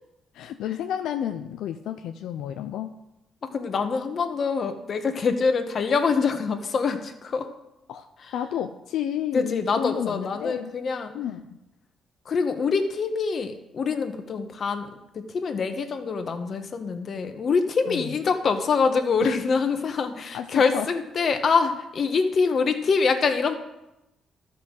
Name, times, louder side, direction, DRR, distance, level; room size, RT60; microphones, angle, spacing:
voice 1, 0.3-2.9 7.9-8.1 8.3-10.7 11.1-11.6 17.9-18.1 19.2-19.4 20.3-20.9, left 10 dB, 85° left, 7 dB, 0.6 m, -31 dB
voice 2, 3.4-7.5 9.3-11.1 12.2-23.6, left 5 dB, 50° left, 7 dB, 1.3 m, -25 dB
12.5 x 5.7 x 6.5 m, 0.93 s
cardioid pair, 90°, 0 cm